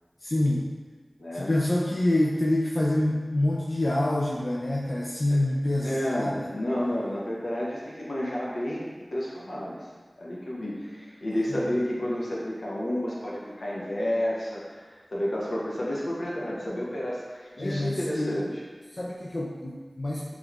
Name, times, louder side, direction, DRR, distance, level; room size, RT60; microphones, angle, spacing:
voice 1, 0.2-0.7 1.3-6.5 11.5-11.6 17.6-18.4 18.9-20.3, left 1 dB, 55° left, -4 dB, 0.3 m, -26 dB
voice 2, 1.2-1.5 5.3-5.4 5.8-9.9 10.2-18.6, left 1 dB, 85° left, -5 dB, 0.7 m, -31 dB
3.5 x 3.0 x 2.3 m, 1.4 s
wide cardioid pair, 55°, 0 cm